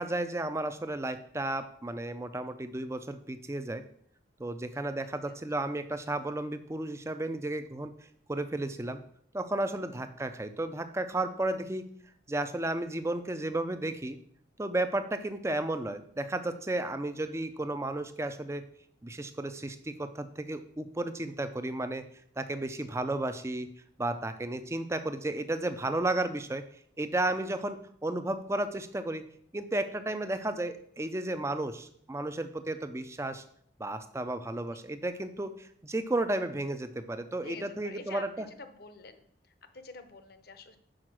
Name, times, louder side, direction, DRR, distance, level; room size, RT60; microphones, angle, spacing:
voice 1, 0.0-3.8 4.4-7.9 8.3-9.0 9.3-11.9 12.3-14.2 14.6-18.6 19.0-22.0 22.4-23.7 24.0-26.6 27.0-29.2 29.5-33.4 33.8-38.5, right 2 dB, 15° right, 10 dB, 0.5 m, -33 dB
voice 2, 4.7-5.7 9.9-10.0 22.8-23.0 34.7-34.8 37.4-40.8, left 4 dB, 55° left, 9 dB, 0.8 m, -49 dB
6.4 x 4.9 x 6.0 m, 0.64 s
head